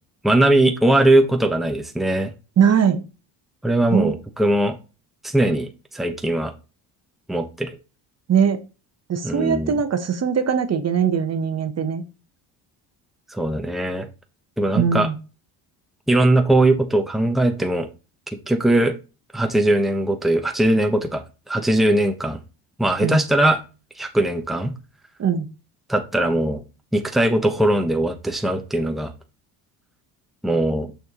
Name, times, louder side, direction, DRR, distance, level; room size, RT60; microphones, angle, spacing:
voice 1, 0.2-2.3 3.6-4.8 5.2-6.5 7.3-7.8 9.2-9.7 13.3-14.1 14.6-15.1 16.1-17.9 18.5-18.9 19.3-22.4 22.8-23.6 24.0-24.7 25.9-26.6 26.9-29.1 30.4-30.9, right 1 dB, ahead, 5 dB, 1.1 m, -20 dB
voice 2, 2.6-3.0 3.9-4.1 8.3-8.6 9.1-12.0 14.7-15.2 23.0-23.2 25.2-25.5, right 7 dB, 40° right, 9 dB, 1.0 m, -20 dB
6.8 x 6.2 x 3.0 m, 0.30 s
cardioid pair, 95°, 41 cm